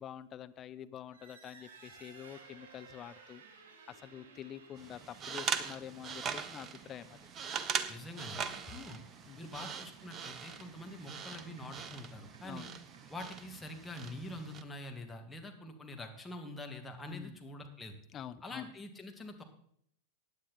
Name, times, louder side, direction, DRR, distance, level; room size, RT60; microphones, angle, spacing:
voice 1, 0.0-3.4 3.9-7.2 9.3-9.6 12.4-12.7 17.1-17.3 18.1-18.7, left 10 dB, 30° left, 11 dB, 0.7 m, -47 dB
sound 1, 1.0-14.4, right 5 dB, 55° right, 3.8 m, -59 dB
sound 2, 4.8-14.6, right 7 dB, 25° right, 0.9 m, -41 dB
voice 2, 7.9-9.0 9.4-12.7 13.1-17.9 18.4-19.4, left 1 dB, 10° left, 2 dB, 2.0 m, -45 dB
16.0 x 9.7 x 4.1 m, 0.66 s
figure-of-eight pair, 90°, 0 cm